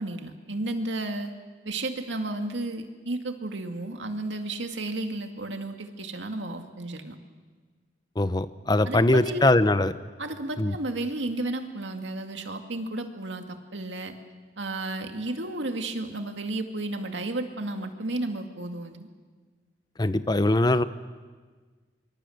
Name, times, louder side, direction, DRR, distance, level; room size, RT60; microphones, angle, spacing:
voice 1, 0.0-1.3 1.6-7.2 8.8-9.5 10.2-14.1 14.6-19.1, right 2 dB, 85° right, 5 dB, 2.2 m, -33 dB
voice 2, 8.2-9.9 10.6-10.8 20.0-20.8, left 2 dB, 25° left, 13 dB, 0.8 m, -22 dB
24.5 x 24.0 x 7.9 m, 1.5 s
head